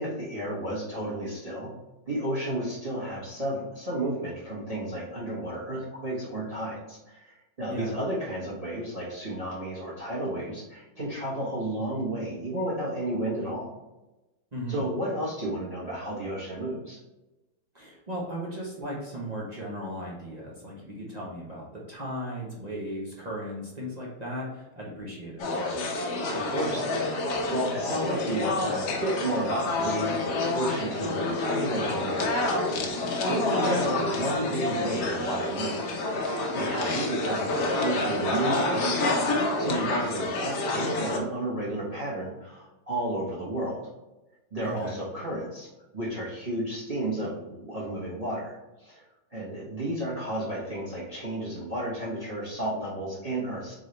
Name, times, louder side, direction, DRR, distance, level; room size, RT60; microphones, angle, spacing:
voice 1, 0.0-1.7 2.1-13.7 14.7-17.0 26.3-36.3 36.5-39.3 39.6-43.8 44.5-45.7 45.9-49.0 49.3-53.7, right 1 dB, 25° right, -6 dB, 1.0 m, -32 dB
voice 2, 14.5-14.8 17.7-25.4 33.6-33.9 44.6-44.9, equal, 45° right, -4 dB, 0.5 m, -36 dB
sound 1, 25.4-41.2, left 2 dB, 65° left, 1.2 m, -28 dB
3.9 x 3.9 x 3.2 m, 1.0 s
omnidirectional pair, 2.1 m